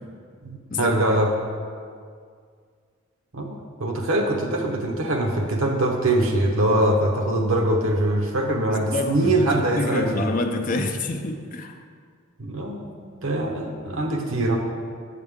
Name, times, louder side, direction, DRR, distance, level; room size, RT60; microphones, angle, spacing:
voice 1, 0.4-1.3 3.3-3.4 3.8-10.3 12.4-12.9 13.2-14.6, right 1 dB, 75° right, 2 dB, 0.9 m, -23 dB
voice 2, 8.7-9.5 9.8-11.8, left 2 dB, 40° left, 4 dB, 0.6 m, -27 dB
8.3 x 8.2 x 3.6 m, 2.1 s
head